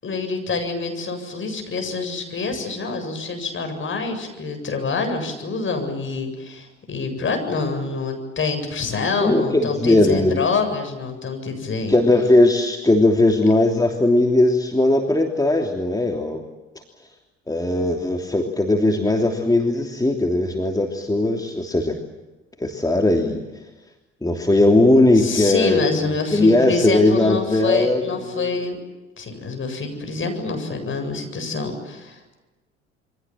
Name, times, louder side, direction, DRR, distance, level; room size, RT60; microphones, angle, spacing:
voice 1, 0.0-12.0 25.2-28.8 29.2-32.4, left 4 dB, 40° left, 6 dB, 7.8 m, -26 dB
voice 2, 9.2-10.4 11.9-16.4 17.5-21.9 22.6-23.4 24.2-28.0 28.3-28.6, left 2 dB, 10° left, 3 dB, 3.2 m, -18 dB
28.0 x 24.5 x 7.6 m, 1.1 s
hypercardioid pair, 55°, 32 cm